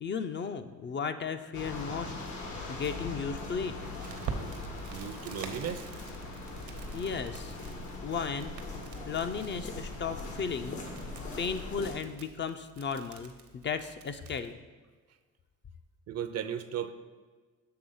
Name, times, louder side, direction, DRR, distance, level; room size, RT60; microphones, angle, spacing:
voice 1, 0.0-2.1 2.7-3.8 6.9-7.6 8.0-8.5 9.1-10.8 11.4-14.6, left 6 dB, 40° left, 9 dB, 0.4 m, -35 dB
sound 1, 1.5-11.9, left 2 dB, 75° left, 1.3 m, -41 dB
Crackle, 4.0-14.5, right 5 dB, 85° right, 0.9 m, -46 dB
voice 2, 4.9-5.9 16.1-16.9, right 9 dB, 55° right, 11 dB, 0.5 m, -35 dB
7.7 x 3.5 x 5.4 m, 1.4 s
cardioid pair, 90°, 30 cm